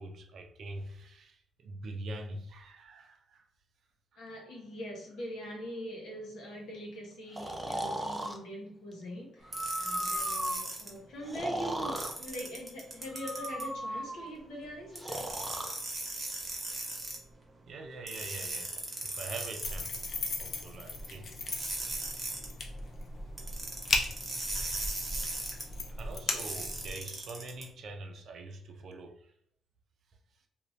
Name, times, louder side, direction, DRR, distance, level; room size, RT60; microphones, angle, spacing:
voice 1, 0.0-3.5 17.7-18.7 19.0-20.0 20.4-21.3 22.0-22.1 24.6-24.7 25.9-29.3, right 2 dB, 60° right, 0.5 m, -44 dB
voice 2, 4.2-15.3, equal, 80° left, 1.0 m, -42 dB
Breathing, 7.4-8.4 9.4-10.7 11.3-12.1 13.1-14.3 15.0-15.8, right 1 dB, 10° right, 0.4 m, -36 dB
sound 1, 9.5-10.9 12.0-13.7 14.9-17.2 18.1-20.3 21.5-22.5 23.4-25.6 26.4-27.6, right 2 dB, 30° right, 0.9 m, -38 dB
sound 2, 19.6-27.0, left 3 dB, 50° left, 0.5 m, -37 dB
2.5 x 2.4 x 3.1 m
cardioid pair, 90°, 0 cm